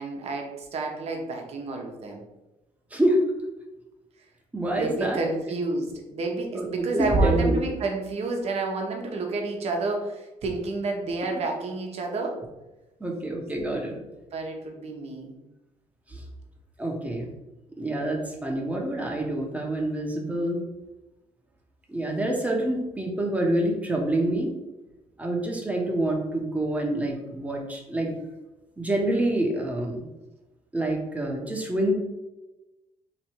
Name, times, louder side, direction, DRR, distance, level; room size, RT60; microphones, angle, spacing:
voice 1, 0.0-2.2 4.7-12.4 14.3-15.4, right 3 dB, 55° right, 2 dB, 0.9 m, -30 dB
voice 2, 2.9-3.2 4.5-5.2 6.5-7.6 13.0-13.9 16.1-16.2 16.8-17.3 17.8-20.6 21.9-24.5 25.2-28.1 28.8-30.1 30.7-31.9, right 1 dB, 10° right, 0 dB, 1.0 m, -26 dB
3.1 x 2.6 x 4.4 m, 1.0 s
cardioid pair, 80°, 13 cm